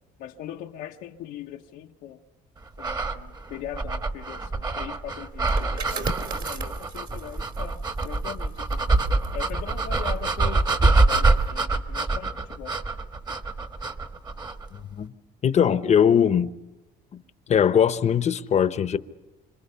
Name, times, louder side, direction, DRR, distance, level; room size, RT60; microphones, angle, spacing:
voice 1, 0.2-2.2 2.8-8.8 9.3-12.8, left 11 dB, 90° left, 1.0 m, -40 dB
sound 1, 2.8-14.7, right 3 dB, 25° right, 1.4 m, -25 dB
sound 2, 5.3-10.8 11.2-11.5, right 4 dB, 60° right, 3.2 m, -39 dB
voice 2, 15.4-16.5 17.5-19.0, left 8 dB, 40° left, 0.9 m, -20 dB
27.0 x 26.0 x 5.6 m
cardioid pair, 110°, 17 cm